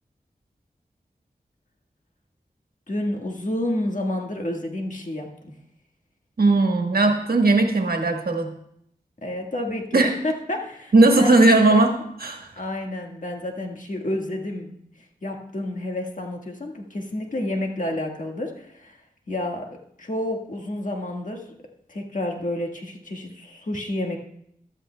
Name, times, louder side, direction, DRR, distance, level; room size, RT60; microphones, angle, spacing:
voice 1, 2.9-5.5 9.2-11.4 11.7-11.8 12.6-14.8 15.2-19.0 19.3-21.5 21.9-24.2, left 1 dB, 55° left, 1 dB, 1.6 m, -30 dB
voice 2, 6.4-8.5 9.9-10.2 10.9-12.5, right 2 dB, 80° right, 4 dB, 1.3 m, -18 dB
14.0 x 12.5 x 2.2 m, 0.73 s
wide cardioid pair, 65°, 15 cm